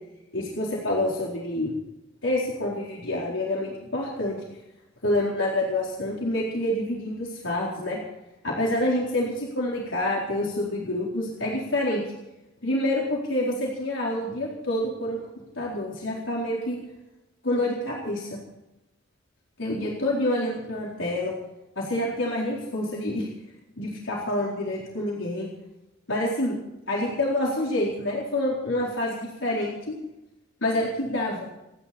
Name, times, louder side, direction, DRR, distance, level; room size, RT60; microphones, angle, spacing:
voice 1, 0.3-1.7 2.2-4.4 5.0-8.0 8.4-12.0 12.6-15.2 15.6-16.8 17.4-18.4 19.6-21.3 21.8-23.3 23.8-25.5 26.1-26.6 26.9-30.0 30.6-31.5, left 1 dB, 80° left, -3 dB, 4.3 m, -27 dB
30.0 x 11.0 x 4.4 m, 0.93 s
head